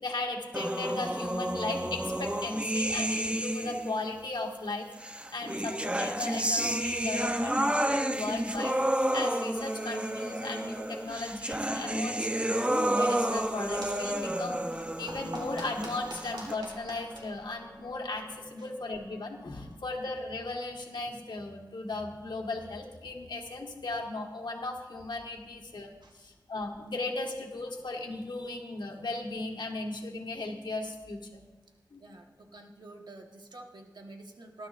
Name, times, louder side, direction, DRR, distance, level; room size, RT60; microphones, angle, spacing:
voice 1, 0.0-4.9 5.3-8.8 9.1-31.4 31.9-32.0, left 2 dB, 80° left, 1 dB, 1.6 m, -36 dB
sound 1, 0.5-4.0 5.0-16.5, right 1 dB, 15° right, 0.8 m, -31 dB
sound 2, 10.9-21.1, equal, 25° left, 2.0 m, -52 dB
sound 3, 13.0-18.3, right 1 dB, 90° right, 3.3 m, -47 dB
voice 2, 32.0-34.7, right 2 dB, 75° right, 2 dB, 1.5 m, -48 dB
19.5 x 12.0 x 2.6 m, 1.2 s
wide cardioid pair, 60°, 8 cm